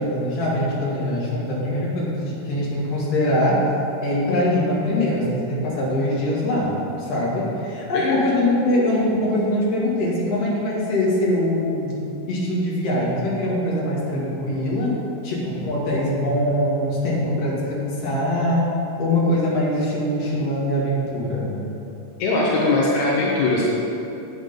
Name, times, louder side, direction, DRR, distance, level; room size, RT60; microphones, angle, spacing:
voice 1, 0.0-3.6 4.0-6.7 7.0-12.0 12.3-15.0 15.2-18.6 19.0-21.5, left 1 dB, 45° left, -6 dB, 2.4 m, -22 dB
voice 2, 22.2-23.6, left 2 dB, 75° left, -5 dB, 1.7 m, -20 dB
8.2 x 8.2 x 5.2 m, 2.9 s
omnidirectional pair, 4.7 m